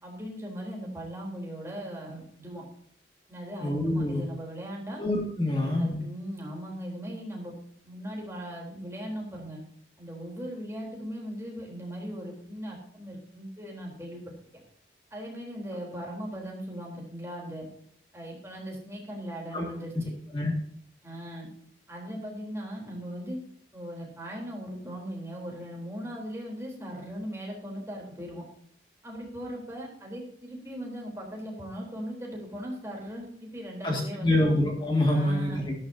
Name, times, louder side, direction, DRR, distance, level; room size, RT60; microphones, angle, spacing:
voice 1, 0.0-2.6 3.3-5.0 5.5-7.5 7.8-9.6 10.0-14.3 15.1-17.6 18.1-20.1 21.0-21.5 21.9-23.4 23.7-28.4 29.0-34.5 35.1-35.6, equal, 15° right, -2 dB, 3.6 m, -39 dB
voice 2, 3.6-4.3 5.0-6.0 19.5-19.6 20.3-20.5 33.8-35.7, left 1 dB, 25° left, 0 dB, 2.1 m, -26 dB
13.5 x 13.0 x 2.8 m, 0.64 s
head